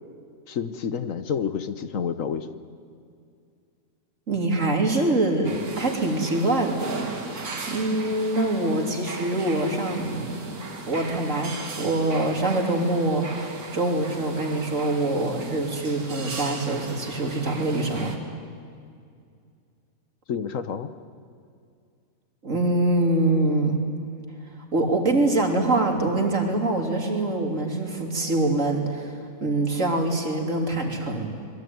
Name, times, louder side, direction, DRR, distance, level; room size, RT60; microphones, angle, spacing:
voice 1, 0.5-2.5 20.3-20.9, left 7 dB, 65° left, 11 dB, 1.3 m, -29 dB
voice 2, 4.3-6.8 7.7-10.6 10.9-18.1 22.4-23.9 24.7-31.3, right 2 dB, 60° right, 3 dB, 3.4 m, -24 dB
sound 1, 5.4-18.2, right 3 dB, 80° right, 2.7 m, -37 dB
25.5 x 22.0 x 9.5 m, 2.3 s
omnidirectional pair, 1.5 m